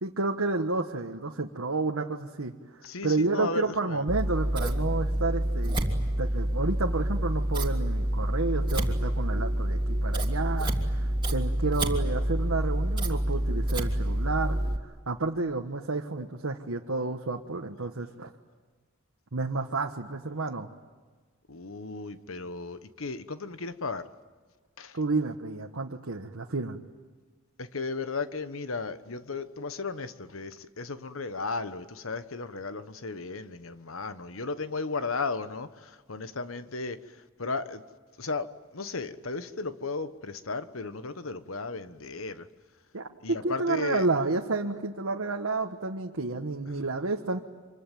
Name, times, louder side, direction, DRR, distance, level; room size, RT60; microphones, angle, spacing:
voice 1, 0.0-2.5 3.0-14.6 15.1-18.3 19.3-20.7 24.9-26.8 42.9-47.4, right 3 dB, 85° right, 2 dB, 1.4 m, -30 dB
voice 2, 2.8-4.0 21.5-24.0 24.8-24.9 27.6-35.7 36.1-37.0 37.4-37.8 38.2-38.5 38.7-42.4 43.2-44.0, left 3 dB, 75° left, 12 dB, 1.3 m, -35 dB
Scissors, 4.1-14.8, right 1 dB, 25° right, 2.9 m, -27 dB
26.5 x 23.5 x 9.3 m, 1.4 s
head